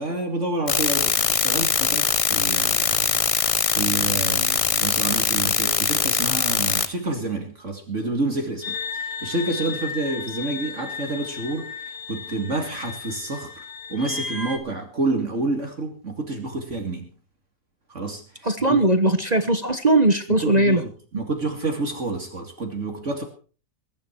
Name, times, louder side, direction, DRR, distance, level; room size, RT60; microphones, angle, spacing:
voice 1, 0.0-17.1 17.9-18.8 20.4-20.9 21.1-23.2, right 2 dB, 50° right, 2.7 m, -29 dB
sound 1, 0.7-6.9, left 5 dB, 40° left, 0.5 m, -22 dB
sound 2, 8.6-14.6, left 6 dB, 85° left, 3.6 m, -34 dB
voice 2, 18.4-20.8, right 2 dB, 30° right, 1.2 m, -19 dB
21.5 x 11.0 x 4.6 m
omnidirectional pair, 1.7 m